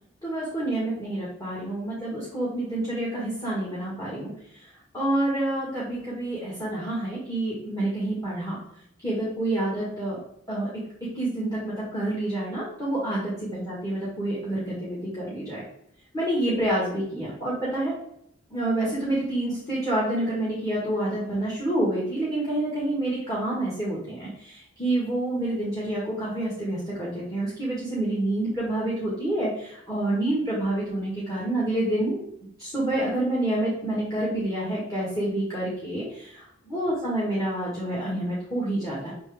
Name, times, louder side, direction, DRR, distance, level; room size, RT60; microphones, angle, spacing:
voice 1, 0.2-4.3 4.9-8.6 9.0-10.2 10.5-10.7 11.1-15.6 16.1-18.0 18.5-32.2 32.6-39.1, right 1 dB, 15° left, -8 dB, 1.8 m, -28 dB
5.9 x 4.5 x 3.5 m, 0.73 s
head